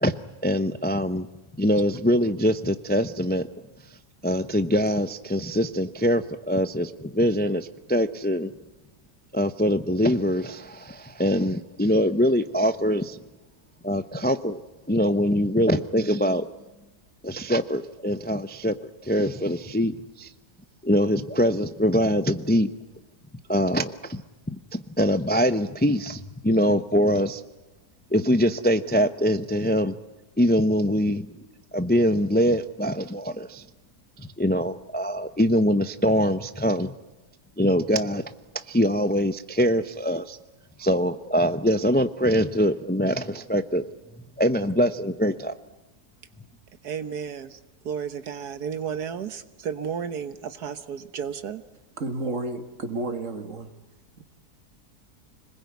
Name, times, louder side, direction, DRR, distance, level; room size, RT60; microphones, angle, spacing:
voice 1, 0.0-1.3 1.6-3.5 3.8-8.5 9.3-13.2 13.8-14.6 14.9-16.5 17.2-20.3 20.8-22.7 23.5-24.2 24.5-27.4 28.1-30.0 30.4-31.4 31.7-33.7 34.2-36.9 37.6-40.4 40.8-43.8 44.1-45.5, equal, 10° left, 0.4 m, -23 dB
voice 2, 46.8-47.6 47.9-51.6, right 7 dB, 75° right, 1.7 m, -33 dB
voice 3, 52.0-53.7 54.2-54.3, right 2 dB, 50° right, 2.4 m, -31 dB
26.5 x 21.0 x 9.6 m
omnidirectional pair, 1.7 m